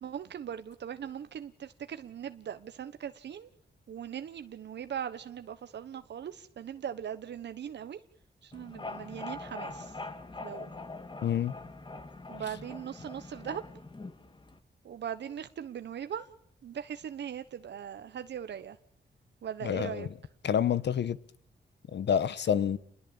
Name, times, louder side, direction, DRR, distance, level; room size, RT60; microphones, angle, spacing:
voice 1, 0.0-3.5 3.9-8.0 8.4-10.0 10.4-10.7 12.3-13.6 14.8-16.3 16.6-18.8 19.4-20.1, right 9 dB, 85° right, 1.2 m, -40 dB
sound 1, 8.5-14.6, left 2 dB, 25° left, 2.5 m, -43 dB
voice 2, 11.2-11.5 19.6-20.1 20.4-21.2 21.9-22.8, left 8 dB, 80° left, 1.2 m, -28 dB
29.0 x 21.5 x 8.8 m
wide cardioid pair, 105°, 18 cm